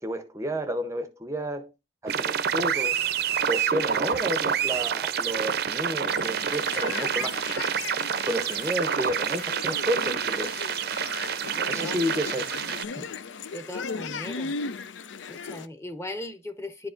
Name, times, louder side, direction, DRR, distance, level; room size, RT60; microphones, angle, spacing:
voice 1, 0.0-1.7 2.0-3.0 3.5-7.4 8.2-10.5 11.7-12.5 12.9-13.1, equal, 15° right, 0.6 m, -31 dB
sound 1, 2.1-12.8, right 8 dB, 55° right, 0.5 m, -28 dB
sound 2, 6.0-15.7, left 5 dB, 85° left, 0.5 m, -37 dB
voice 2, 11.5-12.0 13.5-14.5 15.3-16.9, left 1 dB, 15° left, 0.9 m, -38 dB
10.5 x 4.7 x 2.5 m
head